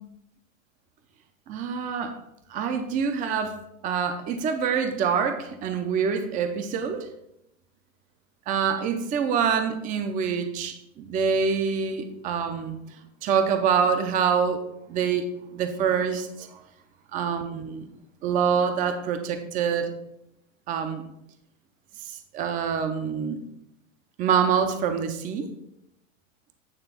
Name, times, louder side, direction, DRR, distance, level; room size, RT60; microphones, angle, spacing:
voice 1, 1.5-2.2 2.5-7.1 8.5-12.8 13.2-14.6 14.9-15.2 15.5-16.6 17.1-17.9 18.2-19.9 20.7-21.0 22.0-23.4 24.2-25.5, right 6 dB, 20° right, 8 dB, 0.5 m, -26 dB
9.0 x 3.3 x 5.7 m, 0.80 s
supercardioid pair, 145°, 40 cm